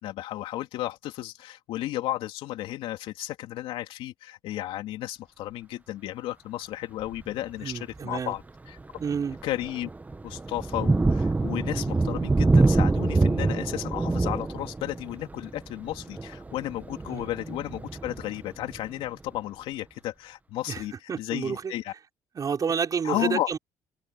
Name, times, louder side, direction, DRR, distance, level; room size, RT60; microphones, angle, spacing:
voice 1, 0.0-8.4 8.7-8.8 9.4-9.9 10.2-21.9 23.0-23.5, left 14 dB, 80° left, 3.3 m, -33 dB
Thunder, 7.0-7.3 7.9-8.0 8.5-19.1, right 3 dB, 15° right, 1.2 m, -26 dB
voice 2, 7.6-8.4 9.0-9.4 17.1-17.2 20.7-20.8 21.1-21.7 22.3-23.6, right 6 dB, 40° right, 5.3 m, -29 dB
open air
cardioid pair, 85°, 9 cm